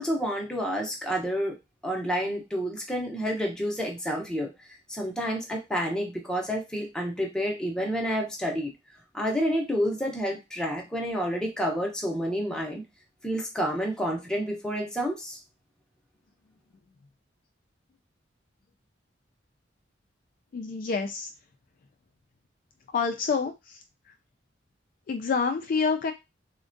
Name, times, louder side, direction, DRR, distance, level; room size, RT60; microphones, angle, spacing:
voice 1, 0.0-1.6 1.8-4.5 4.9-8.7 9.1-12.8 13.2-15.4, equal, 5° left, 0 dB, 0.6 m, -29 dB
voice 2, 20.5-21.3 22.9-24.1 25.1-26.1, left 5 dB, 50° left, 6 dB, 0.3 m, -28 dB
3.5 x 2.1 x 2.5 m, 0.23 s
head